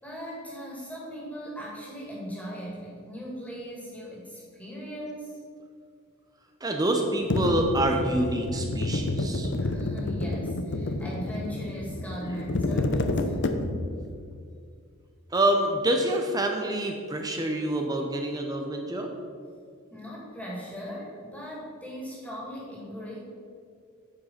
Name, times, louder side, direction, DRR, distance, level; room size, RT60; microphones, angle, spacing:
voice 1, 0.0-5.4 9.6-13.4 19.9-23.2, equal, 5° left, -5 dB, 2.5 m, -39 dB
voice 2, 6.6-9.5 15.3-19.1, right 1 dB, 20° right, 3 dB, 0.7 m, -26 dB
sound 1, 7.3-14.0, left 2 dB, 55° left, 0.6 m, -29 dB
9.5 x 5.4 x 5.7 m, 2.2 s
head